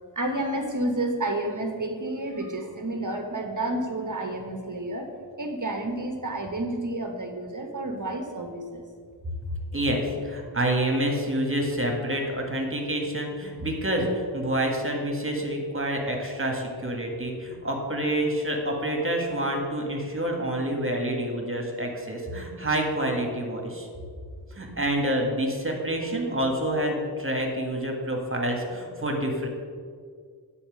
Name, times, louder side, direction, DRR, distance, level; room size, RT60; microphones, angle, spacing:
voice 1, 0.1-5.1 5.4-8.8, right 1 dB, 45° right, 4 dB, 1.1 m, -30 dB
voice 2, 9.7-23.9 24.5-29.5, right 1 dB, 30° right, 1 dB, 1.7 m, -28 dB
9.9 x 4.4 x 7.4 m, 2.1 s
wide cardioid pair, 80°, 43 cm